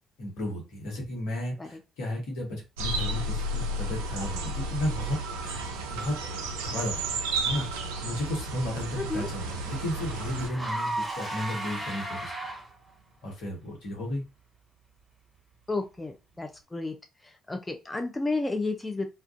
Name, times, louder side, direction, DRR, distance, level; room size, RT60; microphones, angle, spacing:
voice 1, 0.2-7.2 7.4-7.7 8.0-12.3 13.2-14.2, left 1 dB, 70° left, 0 dB, 1.0 m, -34 dB
sound 1, 2.8-10.5, right 2 dB, 80° right, 0.3 m, -32 dB
Car / Engine, 7.9-12.9, right 1 dB, 25° right, 1.3 m, -36 dB
voice 2, 9.0-9.3 15.7-16.9 17.2-19.1, left 3 dB, 20° left, 5 dB, 0.4 m, -32 dB
2.3 x 2.2 x 2.4 m, 0.28 s
hypercardioid pair, 45°, 0 cm